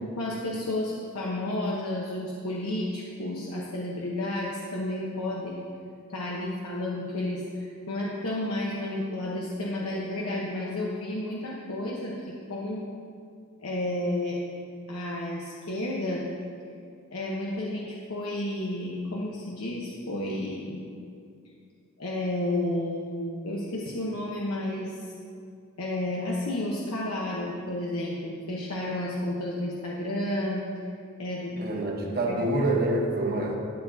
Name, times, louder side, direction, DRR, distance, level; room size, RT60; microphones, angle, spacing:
voice 1, 0.0-5.6 6.1-12.9 13.6-14.4 14.9-16.3 17.1-20.9 22.0-25.1 25.8-30.6 31.2-31.8 32.3-32.5, left 1 dB, 85° left, -4 dB, 1.1 m, -31 dB
voice 2, 31.5-33.6, right 2 dB, 45° right, 0 dB, 1.2 m, -26 dB
12.0 x 10.5 x 2.8 m, 2.3 s
head